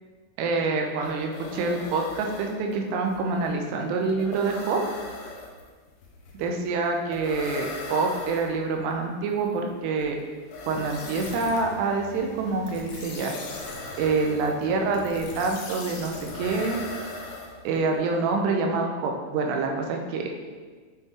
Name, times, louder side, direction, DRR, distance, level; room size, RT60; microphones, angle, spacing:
voice 1, 0.4-4.8 6.4-10.2 10.7-13.3 14.0-16.8 17.6-20.3, right 4 dB, 90° right, 2 dB, 2.8 m, -26 dB
sound 1, 0.6-0.7 0.9-18.0, left 2 dB, 90° left, 3.0 m, -40 dB
sound 2, 10.8-17.2, left 3 dB, 70° left, 2.2 m, -42 dB
9.2 x 3.7 x 3.1 m, 1.5 s
omnidirectional pair, 4.9 m